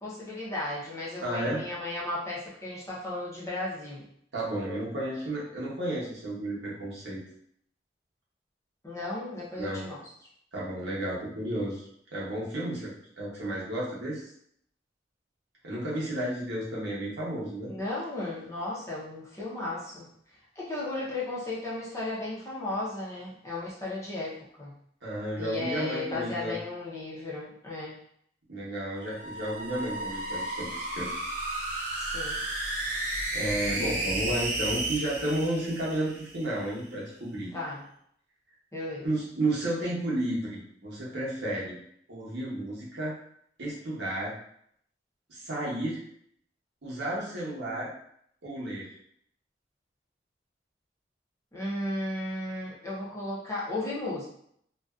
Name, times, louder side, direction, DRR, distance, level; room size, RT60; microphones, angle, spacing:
voice 1, 0.0-4.1 8.8-10.0 17.7-20.1 20.6-24.7 25.4-28.0 32.0-32.4 37.5-37.8 38.7-39.1 51.5-54.3, left 2 dB, 15° left, -6 dB, 0.6 m, -35 dB
voice 2, 1.2-1.6 4.3-7.2 9.6-9.9 10.5-14.2 15.6-17.7 25.0-26.6 28.5-31.1 33.3-37.5 39.0-41.7 42.1-43.1 43.6-44.3 45.3-46.0 46.8-47.9 48.4-48.9, right 1 dB, 85° right, -6 dB, 0.9 m, -32 dB
sound 1, 29.0-36.5, right 2 dB, 45° right, 0.7 m, -33 dB
2.5 x 2.2 x 2.3 m, 0.68 s
head